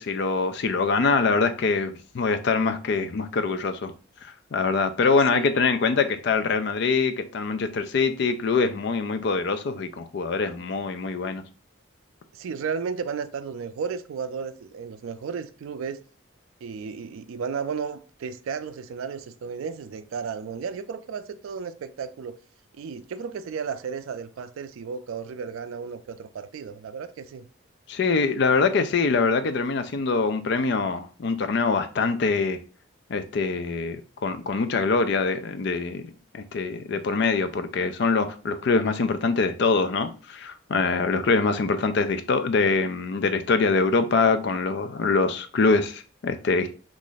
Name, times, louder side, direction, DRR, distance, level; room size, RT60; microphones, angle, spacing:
voice 1, 0.0-3.9 4.2-11.4 27.9-32.6 33.1-36.1 36.3-46.7, left 4 dB, 55° left, 0.4 m, -24 dB
voice 2, 5.0-5.5 12.3-16.0 16.6-22.4 22.8-27.5, right 6 dB, 85° right, 0.3 m, -34 dB
3.0 x 2.4 x 3.9 m
head